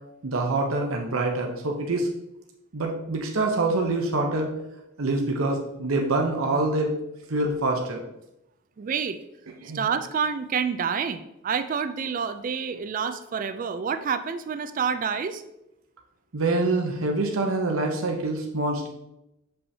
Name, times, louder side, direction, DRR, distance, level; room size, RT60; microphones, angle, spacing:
voice 1, 0.2-2.1 2.7-4.5 5.0-6.9 7.3-8.0 9.6-9.8 16.3-18.9, right 2 dB, 85° right, 1 dB, 0.8 m, -25 dB
voice 2, 8.8-9.2 9.7-15.4, right 6 dB, 40° right, 11 dB, 0.3 m, -28 dB
7.0 x 5.5 x 2.7 m, 0.86 s
head